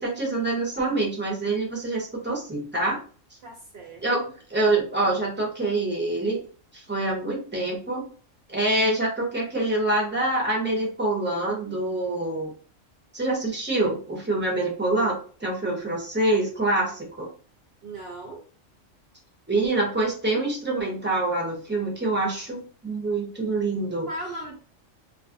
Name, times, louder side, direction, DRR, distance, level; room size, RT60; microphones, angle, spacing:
voice 1, 0.0-3.0 4.0-4.2 4.5-6.4 6.7-8.0 8.5-12.5 13.1-17.3 19.5-24.1, right 2 dB, 10° right, -2 dB, 0.6 m, -26 dB
voice 2, 3.4-4.3 17.8-18.5 24.1-24.6, right 1 dB, 60° right, 0 dB, 0.7 m, -38 dB
2.4 x 2.4 x 2.6 m, 0.39 s
omnidirectional pair, 1.4 m